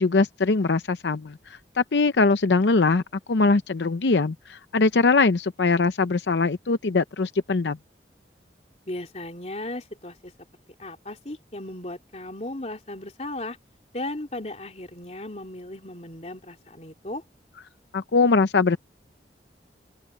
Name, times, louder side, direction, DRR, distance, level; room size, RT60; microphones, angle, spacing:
voice 1, 0.0-3.0 3.3-7.8 17.9-18.8, left 3 dB, 80° left, 0.7 m, -22 dB
voice 2, 8.9-10.3 10.8-13.6 13.9-17.2, left 1 dB, 40° left, 3.2 m, -36 dB
open air
head